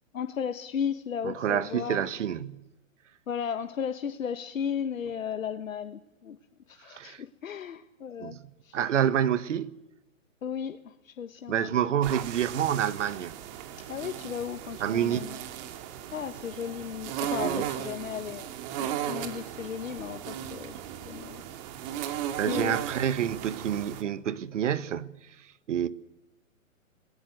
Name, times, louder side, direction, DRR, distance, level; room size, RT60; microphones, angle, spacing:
voice 1, 0.1-2.1 3.3-6.4 6.7-8.4 8.6-8.8 10.4-12.1 13.9-15.4 16.1-18.5 18.8-21.4 22.5-22.8, left 7 dB, 70° left, 1.5 m, -35 dB
voice 2, 1.2-2.7 6.9-7.2 8.2-9.7 11.5-13.3 14.8-15.4 17.4-17.6 22.1-25.3 25.7-25.9, right 9 dB, 60° right, 1.5 m, -28 dB
sound 1, 12.0-24.0, right 10 dB, 35° right, 2.3 m, -36 dB
27.0 x 20.0 x 8.0 m
hypercardioid pair, 135°, 41 cm